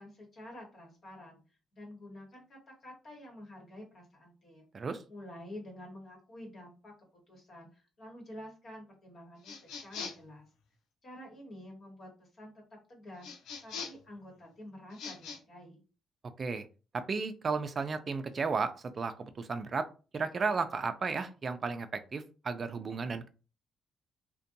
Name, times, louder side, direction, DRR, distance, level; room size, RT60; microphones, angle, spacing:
voice 1, 0.0-1.4 1.7-6.9 7.3-10.5 11.0-12.6 12.9-13.3 13.6-15.8, left 1 dB, 50° left, -1 dB, 1.2 m, -49 dB
sound 1, 9.4-10.3 13.2-14.1 14.9-15.4, left 5 dB, 85° left, 0.5 m, -42 dB
voice 2, 16.9-19.9 20.1-23.3, right 4 dB, 40° right, 10 dB, 0.3 m, -34 dB
2.5 x 2.2 x 2.6 m, 0.34 s
cardioid pair, 90°, 0 cm